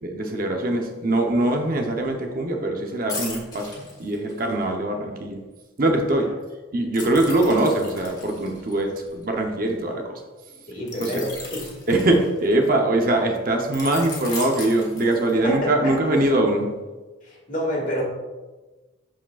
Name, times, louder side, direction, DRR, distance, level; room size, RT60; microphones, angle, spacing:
voice 1, 0.0-5.4 5.8-6.3 6.7-10.2 11.0-11.2 11.9-16.7, right 1 dB, 45° right, 2 dB, 0.8 m, -22 dB
sound 1, 3.1-4.6 6.9-9.7 10.9-12.7 13.7-15.6 16.0-16.2, left 3 dB, 20° left, 1.5 m, -37 dB
voice 2, 10.7-11.7 15.4-15.9 17.2-18.0, equal, 45° left, -2 dB, 1.9 m, -28 dB
11.5 x 4.9 x 2.4 m, 1.2 s
head